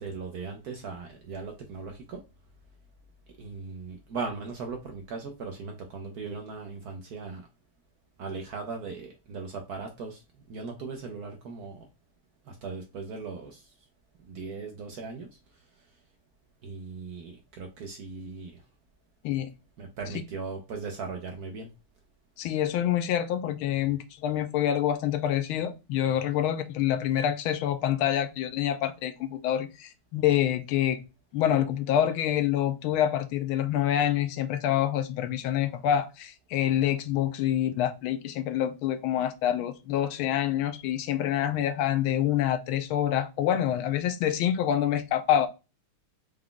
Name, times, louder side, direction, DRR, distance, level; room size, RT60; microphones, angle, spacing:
voice 1, 0.0-2.2 3.4-3.8 4.1-7.4 8.2-10.1 10.5-11.7 12.6-13.5 14.4-15.3 16.6-17.3 17.6-18.5 20.0-21.7, right 4 dB, 80° right, 0.8 m, -38 dB
voice 2, 22.4-31.0 31.3-45.5, left 11 dB, 75° left, 1.3 m, -26 dB
4.8 x 2.3 x 3.7 m
omnidirectional pair, 2.4 m